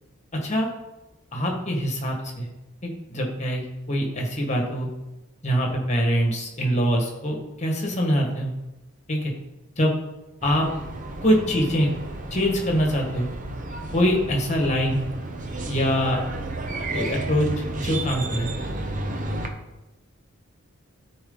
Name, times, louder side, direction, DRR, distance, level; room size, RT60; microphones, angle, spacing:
voice 1, 0.3-0.7 1.3-2.5 2.8-4.9 5.4-8.5 9.1-9.3 9.8-9.9 10.4-10.7 11.2-11.9 12.3-13.3 13.9-15.0 15.7-16.2 16.9-17.5 17.8-18.5, equal, 35° left, 1 dB, 1.7 m, -24 dB
sound 1, 10.4-19.5, right 2 dB, 40° right, 0.9 m, -32 dB
13.5 x 4.6 x 4.0 m, 1.0 s
head